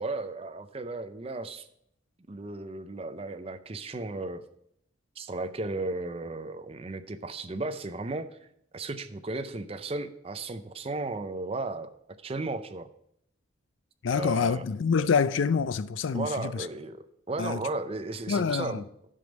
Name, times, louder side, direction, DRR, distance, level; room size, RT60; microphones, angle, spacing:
voice 1, 0.0-1.7 2.3-4.4 5.2-8.3 8.7-11.9 12.2-12.9 14.1-14.6 16.1-17.0 17.3-18.8, right 2 dB, 30° right, 0.5 m, -35 dB
voice 2, 14.0-16.7 17.4-17.6 18.3-18.8, left 5 dB, 80° left, 0.4 m, -26 dB
11.0 x 5.2 x 5.2 m
head